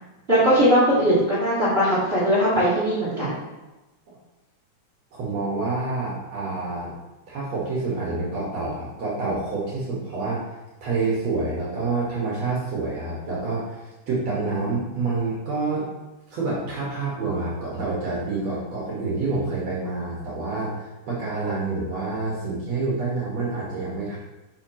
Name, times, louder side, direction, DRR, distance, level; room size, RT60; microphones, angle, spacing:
voice 1, 0.3-3.4, equal, 20° right, -9 dB, 2.9 m, -20 dB
voice 2, 5.1-6.9 7.3-10.4 10.8-15.9 16.3-24.2, right 3 dB, 55° right, -6 dB, 2.7 m, -27 dB
11.0 x 5.9 x 3.0 m, 1.1 s
omnidirectional pair, 3.8 m